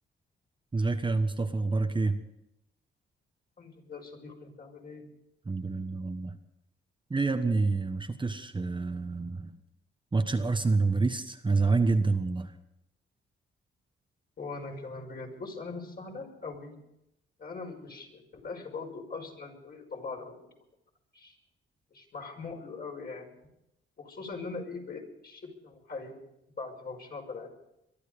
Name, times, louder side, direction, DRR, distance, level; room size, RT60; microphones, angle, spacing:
voice 1, 0.7-2.2 5.5-6.4 7.1-9.5 10.1-12.5, right 3 dB, 25° right, 6 dB, 1.2 m, -27 dB
voice 2, 3.6-5.1 14.4-16.7 17.4-20.4 21.1-21.4 21.9-23.3 24.0-26.2 26.6-27.5, left 4 dB, 50° left, 1 dB, 5.4 m, -41 dB
23.0 x 12.0 x 5.1 m, 0.83 s
cardioid pair, 75°, 21 cm